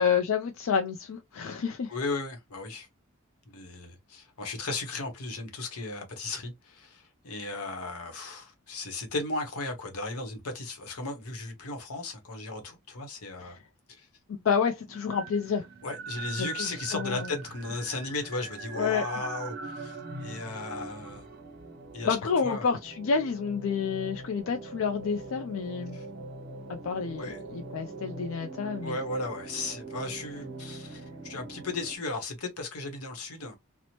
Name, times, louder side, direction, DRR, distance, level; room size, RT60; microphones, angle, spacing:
voice 1, 0.0-1.9 13.4-13.6 14.3-15.6 16.4-17.3 18.8-19.0 22.0-26.0 26.7-29.0, left 6 dB, 65° left, 0.4 m, -29 dB
voice 2, 1.9-2.9 3.5-13.6 13.9-14.1 15.8-21.4 21.9-22.2 22.4-22.7 25.9-26.1 27.2-27.4 28.8-33.6, left 3 dB, 85° left, 0.9 m, -36 dB
sound 1, 14.9-32.0, right 3 dB, 45° right, 0.5 m, -42 dB
2.9 x 2.0 x 2.8 m
head